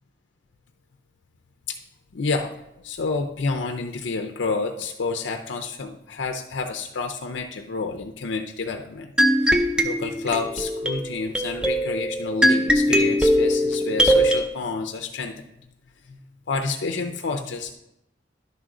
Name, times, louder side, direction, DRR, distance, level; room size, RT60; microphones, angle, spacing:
voice 1, 2.1-2.5 2.8-9.1 9.4-15.3 16.1-16.2 16.5-17.7, left 4 dB, 90° left, 5 dB, 0.6 m, -29 dB
sound 1, 9.2-14.4, equal, 5° right, 0.5 m, -21 dB
11.0 x 5.5 x 3.8 m, 0.85 s
head